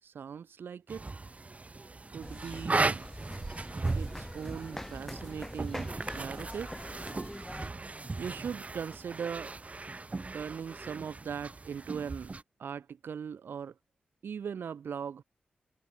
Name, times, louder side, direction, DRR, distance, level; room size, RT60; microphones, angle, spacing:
voice 1, 0.0-1.1 2.1-3.0 3.9-6.8 7.1-7.3 8.2-9.5 10.3-12.3 12.6-13.7 14.2-15.2, right 7 dB, 85° right, 4.5 m, -39 dB
sound 1, 0.9-12.4, right 3 dB, 40° right, 1.1 m, -37 dB
sound 2, 2.2-7.7, left 1 dB, 10° left, 7.4 m, -43 dB
cardioid pair, 40°, 4 cm